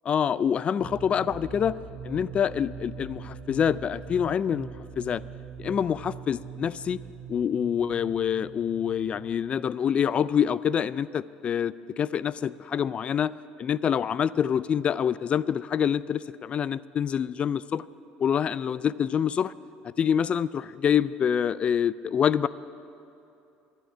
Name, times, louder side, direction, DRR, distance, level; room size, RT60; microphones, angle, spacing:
voice 1, 0.1-1.7 2.0-4.7 5.0-5.2 5.6-7.0 7.3-13.3 13.6-17.8 18.2-19.5 19.8-22.5, left 8 dB, 35° left, 18 dB, 0.3 m, -26 dB
sound 1, 0.8-10.4, right 7 dB, 60° right, 1.6 m, -43 dB
11.5 x 10.0 x 9.7 m, 2.8 s
cardioid pair, 115°, 3 cm